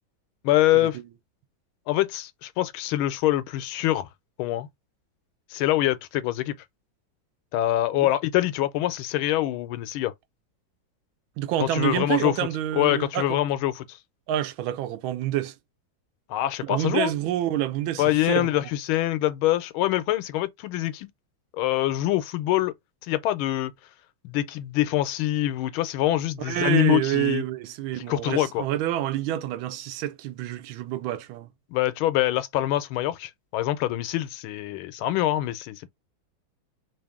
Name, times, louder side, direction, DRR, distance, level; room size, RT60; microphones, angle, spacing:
voice 1, 0.4-1.0 1.9-4.1 4.4-4.7 5.5-6.5 7.5-10.1 11.6-12.4 12.7-14.0 16.3-17.1 18.0-21.1 21.6-22.7 23.0-23.7 24.2-27.4 28.1-28.6 31.7-35.9, left 14 dB, 85° left, 1.4 m, -25 dB
voice 2, 11.4-13.4 14.3-15.5 16.7-18.5 26.4-31.5, right 13 dB, 80° right, 1.3 m, -28 dB
3.4 x 2.6 x 3.5 m
omnidirectional pair, 2.2 m